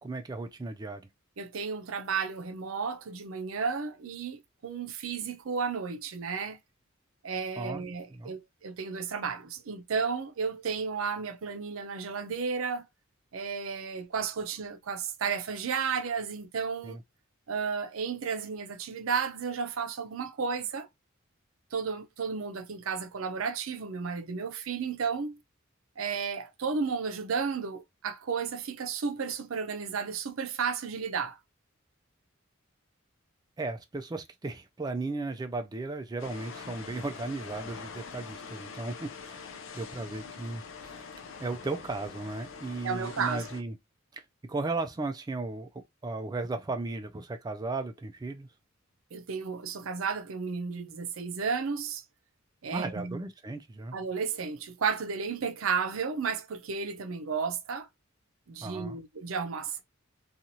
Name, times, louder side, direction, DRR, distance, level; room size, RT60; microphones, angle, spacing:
voice 1, 0.0-1.1 7.6-7.8 8.1-8.3 16.8-17.0 33.6-39.5 39.7-41.0 41.4-43.7 44.1-48.5 52.7-54.0 58.6-59.0, right 3 dB, 20° right, 0.3 m, -36 dB
voice 2, 1.4-6.6 7.2-12.8 13.3-17.0 17.5-20.9 21.7-25.4 26.0-31.4 42.8-43.5 49.1-52.0 52.6-53.2 53.9-57.9 58.5-59.8, right 5 dB, 80° right, 0.5 m, -33 dB
sound 1, 36.2-43.6, left 5 dB, 70° left, 0.5 m, -44 dB
2.7 x 2.4 x 2.8 m
head